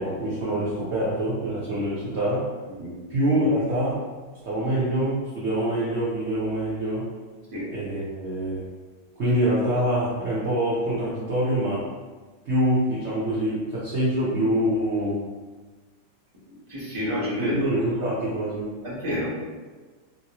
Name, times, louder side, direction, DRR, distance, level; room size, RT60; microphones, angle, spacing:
voice 1, 0.0-2.5 3.1-4.0 4.4-7.1 7.7-8.6 9.2-11.9 12.4-15.3 17.4-18.7, right 1 dB, 55° right, -10 dB, 0.9 m, -25 dB
voice 2, 16.5-17.5 18.8-19.5, equal, 25° right, -8 dB, 0.9 m, -29 dB
3.0 x 2.9 x 2.9 m, 1.3 s
omnidirectional pair, 1.9 m